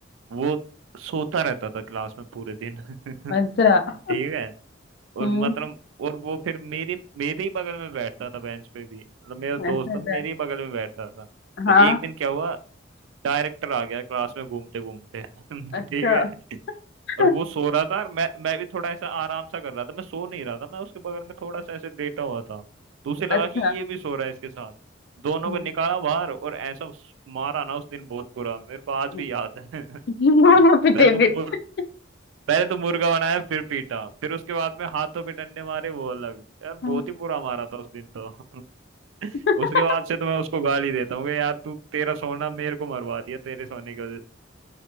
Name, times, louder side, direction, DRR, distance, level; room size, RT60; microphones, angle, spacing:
voice 1, 0.9-3.3 4.1-4.5 5.1-11.3 11.8-12.6 13.2-16.3 17.2-22.6 23.0-24.7 25.2-27.0 27.3-30.0 30.9-31.6 32.5-38.6 39.2-44.2, right 6 dB, 80° right, 12 dB, 0.3 m, -29 dB
voice 2, 3.3-4.1 5.2-5.5 9.6-10.2 11.6-12.0 15.7-16.3 17.2-17.3 23.3-23.8 25.5-25.6 30.1-31.3 36.8-37.0 39.5-39.6, left 3 dB, 55° left, 8 dB, 0.4 m, -19 dB
3.1 x 2.1 x 3.0 m, 0.40 s
head